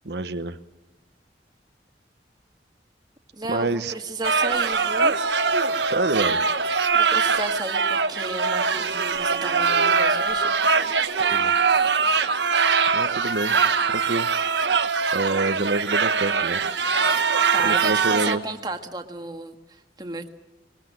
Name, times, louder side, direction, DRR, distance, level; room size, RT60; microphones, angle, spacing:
voice 1, 0.0-0.6 3.5-3.9 5.8-6.4 11.3-11.5 12.9-13.6 13.9-14.3 15.1-16.6 17.6-18.4, right 2 dB, 70° right, 9 dB, 1.0 m, -27 dB
voice 2, 3.3-5.1 6.9-10.5 17.5-20.3, right 2 dB, 25° right, 5 dB, 1.7 m, -34 dB
sound 1, 4.2-18.4, right 5 dB, 85° right, 1.3 m, -22 dB
22.5 x 21.5 x 7.8 m, 1.0 s
head